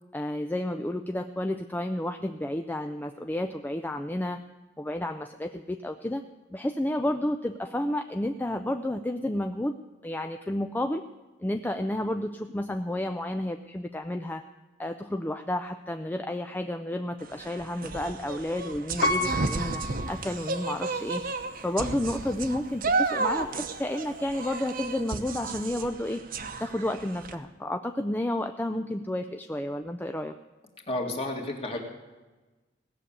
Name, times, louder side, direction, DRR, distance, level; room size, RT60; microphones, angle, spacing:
voice 1, 0.1-4.4 4.8-6.2 6.5-9.7 10.0-11.0 11.4-14.4 14.8-21.2 21.6-26.2 26.6-30.3, left 1 dB, 10° left, 6 dB, 0.4 m, -31 dB
sound 1, 17.2-27.4, right 3 dB, 50° right, 0.9 m, -33 dB
Piano, 19.0-21.0 21.6-21.7, left 1 dB, 65° left, 1.1 m, -31 dB
voice 2, 30.9-31.8, left 2 dB, 30° left, 2 dB, 2.0 m, -31 dB
17.0 x 6.8 x 8.6 m, 1.2 s
head